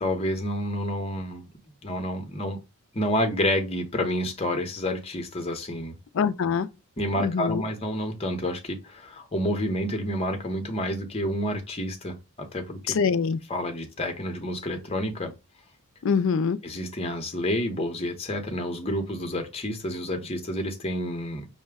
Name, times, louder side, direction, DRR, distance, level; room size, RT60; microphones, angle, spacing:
voice 1, 0.0-1.4 1.8-2.6 2.9-6.0 7.0-12.9 13.5-15.3 16.6-21.5, left 1 dB, 25° left, 0.7 m, -29 dB
voice 2, 6.1-6.7 7.2-7.6 12.9-13.4 16.0-16.6, left 6 dB, 60° left, 0.4 m, -24 dB
5.7 x 2.1 x 3.4 m
head